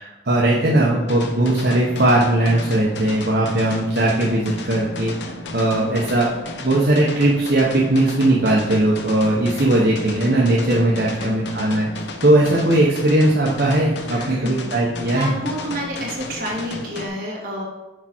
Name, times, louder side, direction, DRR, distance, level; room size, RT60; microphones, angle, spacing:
voice 1, 0.0-6.3 6.6-11.9 12.2-15.3, right 1 dB, 65° right, -5 dB, 1.0 m, -19 dB
voice 2, 0.6-1.1 5.7-6.3 10.7-11.4 14.0-14.7 15.0-17.6, equal, 50° right, -4 dB, 2.2 m, -30 dB
sound 1, 1.1-17.1, left 2 dB, 75° left, 0.7 m, -33 dB
6.5 x 4.8 x 4.4 m, 1.1 s
head